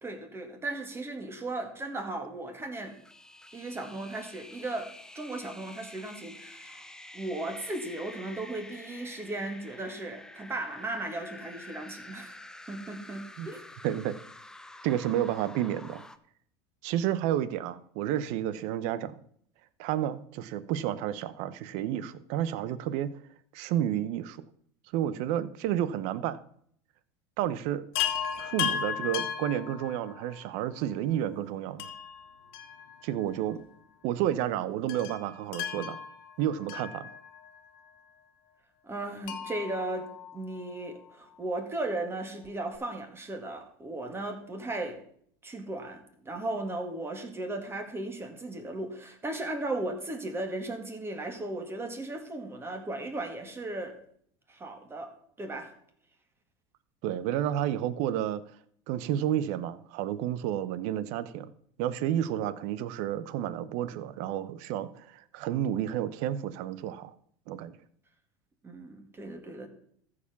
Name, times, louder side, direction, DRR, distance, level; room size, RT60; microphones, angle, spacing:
voice 1, 0.0-3.0 3.5-12.4 12.7-13.7 38.8-45.0 45.4-54.0 54.5-55.1 55.4-55.7 68.6-69.7, right 2 dB, 20° right, 5 dB, 2.2 m, -36 dB
sound 1, 2.7-16.2, left 1 dB, 5° left, 0.7 m, -48 dB
voice 2, 13.8-14.2 14.8-16.0 16.8-19.2 19.8-23.1 23.5-24.4 24.9-26.4 27.4-27.8 28.4-31.9 33.0-33.6 34.0-36.0 36.4-37.1 57.0-58.4 58.9-61.5 61.8-67.1 67.5-67.8, right 11 dB, 65° right, 16 dB, 0.8 m, -31 dB
Chime, 27.9-30.4 31.8-33.3 33.6-33.7 34.9-37.6 39.2-40.9 42.4-42.5 42.7-42.8, left 9 dB, 75° left, 1.6 m, -36 dB
14.0 x 5.0 x 7.0 m, 0.64 s
supercardioid pair, 105°, 13 cm